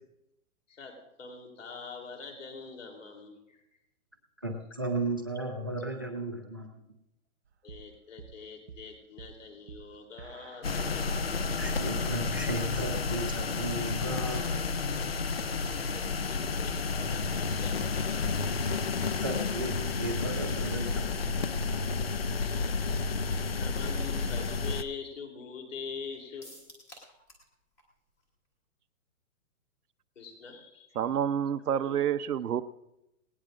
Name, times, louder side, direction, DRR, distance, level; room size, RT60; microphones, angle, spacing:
voice 1, 1.2-3.6 7.6-10.9 15.9-18.3 22.3-23.0 23.5-26.5 30.2-31.0 31.7-32.1, left 5 dB, 60° left, 3 dB, 3.4 m, -44 dB
voice 2, 4.4-6.8 11.6-14.6 19.2-21.7, right 2 dB, 15° right, 4 dB, 0.6 m, -35 dB
sound 1, 7.5-17.7, right 7 dB, 50° right, 0.7 m, -49 dB
sound 2, 10.6-24.8, left 4 dB, 45° left, 0.6 m, -31 dB
sound 3, 26.4-27.5 27.8-27.9 28.2-28.3, equal, 10° left, 1.3 m, -51 dB
voice 3, 31.0-32.6, right 9 dB, 85° right, 12 dB, 0.9 m, -28 dB
18.5 x 18.0 x 2.5 m, 0.86 s
hypercardioid pair, 180°, 44 cm